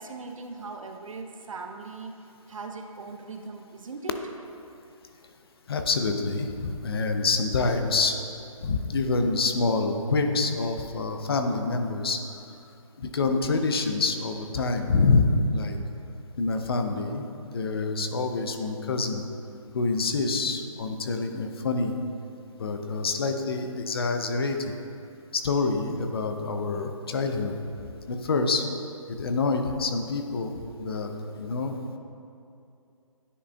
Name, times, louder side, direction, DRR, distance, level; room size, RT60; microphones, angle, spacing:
voice 1, 0.0-2.1 2.5-4.1, right 4 dB, 70° right, 4 dB, 0.6 m, -39 dB
voice 2, 5.7-8.2 8.6-12.2 13.0-15.8 16.4-17.3 17.5-19.2 19.7-21.9 22.6-24.7 25.3-27.5 28.1-28.7 29.2-30.5 30.8-31.1 31.4-31.8, left 3 dB, 45° left, 5 dB, 0.5 m, -26 dB
9.8 x 4.9 x 2.2 m, 2.6 s
figure-of-eight pair, 155°, 18 cm